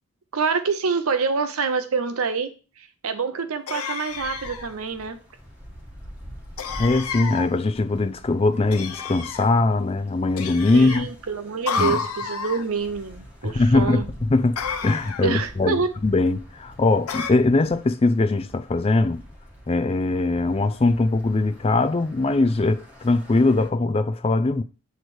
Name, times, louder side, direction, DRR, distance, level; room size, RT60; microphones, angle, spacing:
voice 1, 0.3-5.2 10.7-14.0 15.2-15.9, right 5 dB, 70° right, 0.6 m, -26 dB
sound 1, 3.7-4.7 6.6-7.5 8.7-9.5 10.4-11.0 11.7-12.6 14.6-15.3 17.1-17.3, left 6 dB, 80° left, 0.7 m, -30 dB
sound 2, 4.1-23.7, equal, 5° right, 1.6 m, -45 dB
voice 2, 6.8-11.1 11.8-12.0 13.4-14.6 14.8-19.2 19.7-24.6, left 2 dB, 25° left, 0.4 m, -21 dB
8.0 x 3.2 x 4.4 m
head